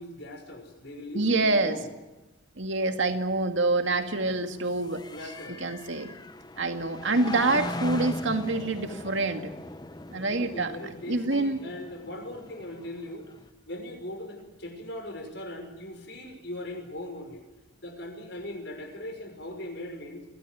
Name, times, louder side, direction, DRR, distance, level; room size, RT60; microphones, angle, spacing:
voice 1, 0.0-1.8 5.1-5.7 10.3-13.3 13.7-17.4 17.8-20.3, left 1 dB, 60° left, 4 dB, 6.1 m, -39 dB
voice 2, 1.1-1.8 2.6-5.0 5.6-6.1 6.6-9.5 10.1-10.7 11.1-11.6, right 2 dB, 70° right, 6 dB, 2.2 m, -26 dB
sound 1, 2.8-13.5, left 2 dB, 20° left, 0.8 m, -40 dB
23.5 x 17.5 x 9.5 m, 1.0 s
head